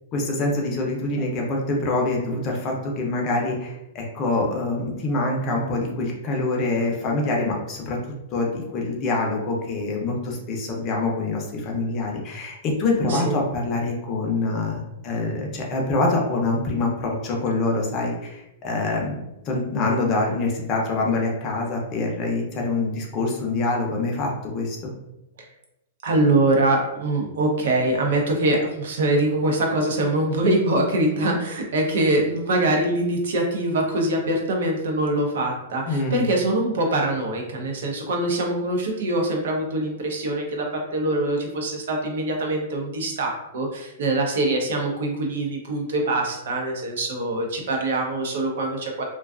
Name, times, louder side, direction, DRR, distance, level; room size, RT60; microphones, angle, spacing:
voice 1, 0.1-8.0 8.3-19.2 19.4-24.9 35.9-36.3, left 2 dB, 25° left, -1 dB, 0.5 m, -25 dB
voice 2, 13.0-13.4 26.0-49.0, right 1 dB, 70° right, 1 dB, 0.6 m, -23 dB
2.4 x 2.3 x 2.3 m, 0.88 s
supercardioid pair, 160°, 0 cm